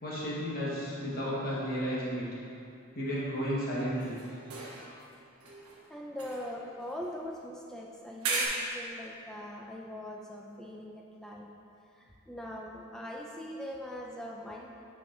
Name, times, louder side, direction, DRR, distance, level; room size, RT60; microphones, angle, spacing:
voice 1, 0.0-2.3 2.9-4.2, equal, 40° left, -7 dB, 1.4 m, -33 dB
sound 1, 4.0-5.1 5.4-7.5 8.2-8.5, right 4 dB, 80° right, 1.1 m, -38 dB
voice 2, 5.9-11.5 12.0-14.7, left 1 dB, ahead, -2 dB, 0.4 m, -42 dB
9.2 x 4.8 x 2.6 m, 2.7 s
head